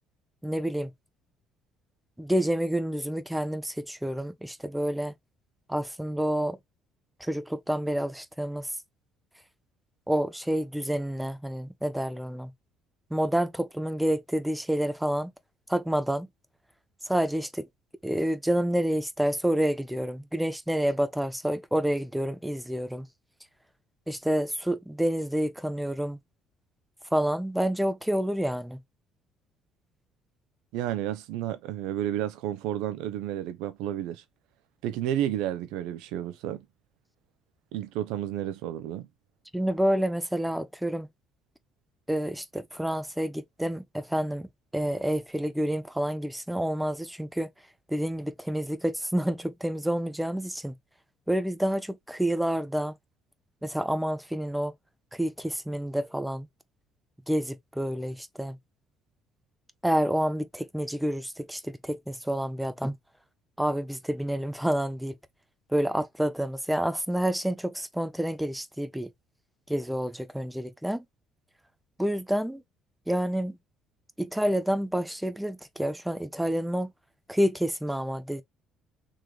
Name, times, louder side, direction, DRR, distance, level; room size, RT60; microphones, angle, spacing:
voice 1, 0.4-0.9 2.2-5.1 5.7-6.6 7.2-8.7 10.1-12.5 13.1-15.3 15.7-16.3 17.1-17.7 18.0-23.1 24.1-26.2 27.1-28.8 39.5-41.1 42.1-47.5 47.9-50.7 51.3-52.9 53.6-54.7 55.2-56.5 57.3-58.6 59.8-63.0 63.6-65.1 65.7-69.1 69.7-71.0 72.0-72.6 73.1-73.6 74.2-76.9 77.3-78.4, equal, 5° right, 0.6 m, -28 dB
voice 2, 30.7-34.2 34.8-36.7 37.7-39.1, right 12 dB, 85° right, 0.7 m, -31 dB
3.8 x 3.1 x 3.3 m
supercardioid pair, 90°, 0 cm